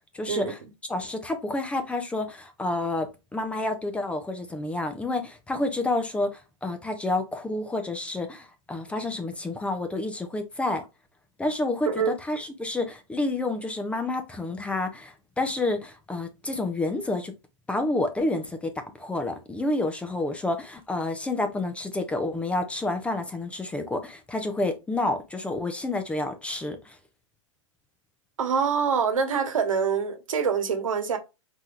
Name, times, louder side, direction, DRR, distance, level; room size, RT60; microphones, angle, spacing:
voice 1, 0.1-0.6 0.9-10.8 11.4-17.3 17.7-27.0, left 2 dB, 5° left, 0.5 m, -29 dB
voice 2, 28.4-31.2, right 6 dB, 85° right, 1.2 m, -25 dB
4.3 x 3.5 x 2.4 m
hypercardioid pair, 130°, 17 cm